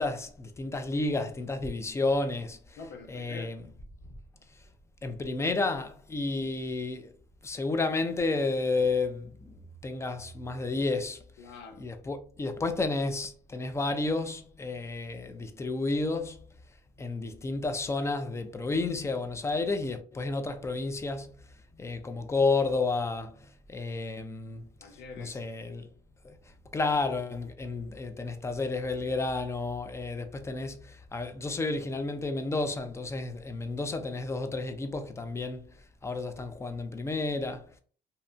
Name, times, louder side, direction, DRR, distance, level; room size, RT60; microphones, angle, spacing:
voice 1, 0.0-2.8 3.1-3.6 5.0-7.1 7.4-11.2 11.8-16.4 17.0-21.4 21.8-24.7 25.2-25.9 26.2-26.4 26.7-35.7 36.0-37.7, left 3 dB, 15° left, 0.3 m, -31 dB
voice 2, 2.8-3.6 11.4-11.9 24.8-25.4, left 4 dB, 90° left, 0.6 m, -45 dB
2.7 x 2.2 x 2.5 m
cardioid pair, 110°, 17 cm